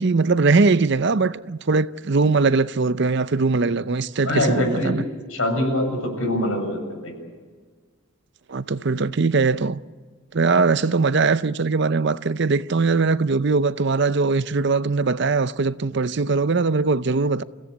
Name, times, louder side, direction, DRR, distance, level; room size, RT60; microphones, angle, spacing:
voice 1, 0.0-5.0 8.5-9.8 10.3-17.4, right 4 dB, 55° right, 0.6 m, -21 dB
voice 2, 4.2-5.0 5.3-7.1, left 1 dB, 80° left, 7.3 m, -23 dB
29.0 x 16.5 x 8.3 m
head